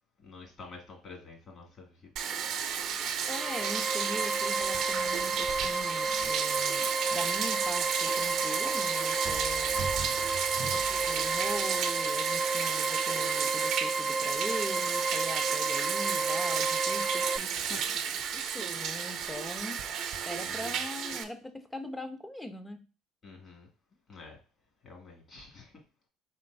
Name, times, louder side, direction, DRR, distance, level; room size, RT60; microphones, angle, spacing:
voice 1, 0.2-2.1 10.0-10.3 17.5-18.0 20.4-20.8 23.2-23.7 24.1-24.4 24.8-25.7, left 4 dB, 40° left, 0 dB, 2.1 m, -49 dB
Bathtub (filling or washing), 2.2-21.2, right 7 dB, 55° right, 0.7 m, -32 dB
sound 1, 3.2-17.4, right 3 dB, 20° right, 0.3 m, -32 dB
voice 2, 3.3-9.9 10.6-17.5 18.3-19.8 20.3-22.8, left 1 dB, 10° left, 9 dB, 0.7 m, -41 dB
4.4 x 3.7 x 2.6 m, 0.33 s
hypercardioid pair, 75°, 0 cm